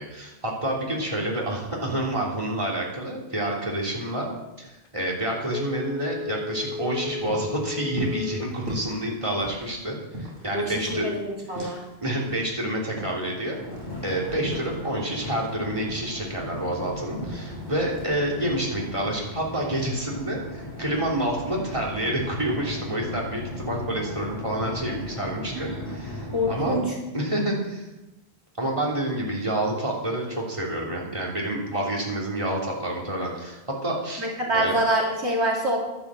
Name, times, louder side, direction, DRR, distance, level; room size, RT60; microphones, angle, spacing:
voice 1, 0.0-4.3 4.6-11.1 11.5-13.6 14.0-26.8 27.1-27.9 28.6-34.2 34.5-34.7, right 1 dB, 30° right, -3 dB, 3.3 m, -28 dB
Telephone, 5.5-8.6 9.0-9.1, left 4 dB, 60° left, 0.8 m, -34 dB
sound 1, 6.5-12.0 12.2-15.6 15.9-17.6 17.9-18.1, right 1 dB, 55° right, 6.8 m, -39 dB
voice 2, 10.5-11.8 25.5-26.0 26.3-26.8 34.2-35.8, right 1 dB, 85° right, -2 dB, 3.2 m, -26 dB
sound 2, 13.5-26.8, left 1 dB, 20° left, 4.1 m, -38 dB
12.0 x 11.0 x 7.6 m, 1.0 s
omnidirectional pair, 1.1 m